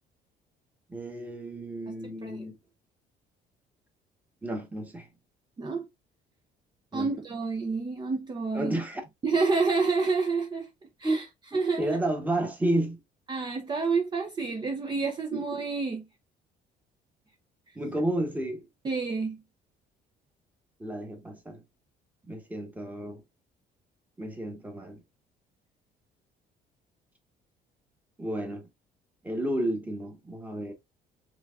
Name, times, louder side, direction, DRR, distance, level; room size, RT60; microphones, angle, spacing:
voice 1, 0.9-2.6 4.4-5.1 6.9-7.1 8.5-9.0 11.0-11.2 11.5-13.0 15.3-15.4 17.7-18.7 20.8-21.6 22.2-23.2 24.2-25.0 28.2-28.7 29.2-30.7, right 1 dB, 10° right, 1.4 m, -31 dB
voice 2, 6.9-8.8 9.2-10.7 11.0-11.2 11.5-12.0 13.3-16.0 18.8-19.4, right 4 dB, 25° right, 0.8 m, -28 dB
5.0 x 3.6 x 2.5 m
cardioid pair, 110°, 17 cm